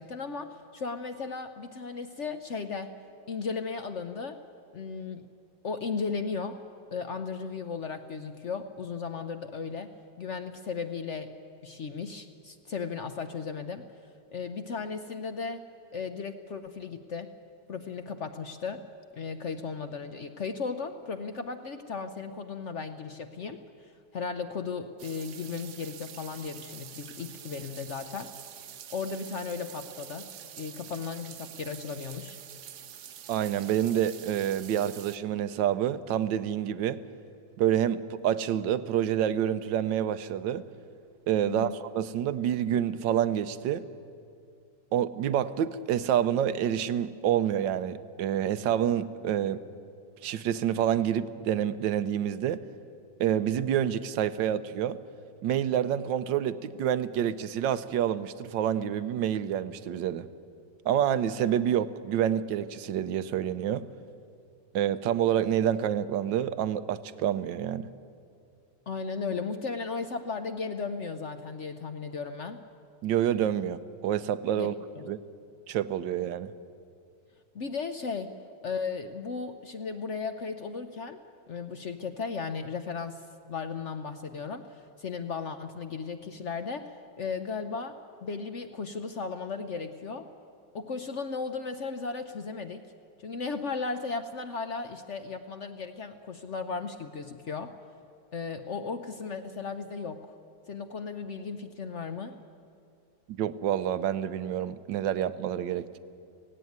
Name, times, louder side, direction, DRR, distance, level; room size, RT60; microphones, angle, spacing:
voice 1, 0.0-2.9 3.3-4.4 4.7-5.3 5.6-6.6 6.9-11.3 11.6-13.9 14.3-15.7 15.9-17.3 17.7-18.8 19.2-28.3 28.9-30.3 30.6-32.4 41.4-41.8 68.9-72.6 74.5-74.7 75.0-75.1 77.5-78.3 78.6-81.2 81.5-83.2 83.5-90.3 90.7-92.8 93.2-97.7 98.3-100.3 100.7-102.4, left 5 dB, 55° left, 8 dB, 0.8 m, -36 dB
sound 1, 25.0-35.2, right 10 dB, 65° right, 1.3 m, -46 dB
voice 2, 33.3-37.0 37.6-40.6 41.3-43.8 44.9-49.6 50.2-52.6 53.2-55.0 55.4-60.3 60.8-63.9 64.7-67.9 73.0-74.7 75.1-75.2 75.7-76.5 103.3-106.0, right 10 dB, 85° right, 13 dB, 1.4 m, -28 dB
17.0 x 16.5 x 9.3 m, 2.5 s
omnidirectional pair, 1.9 m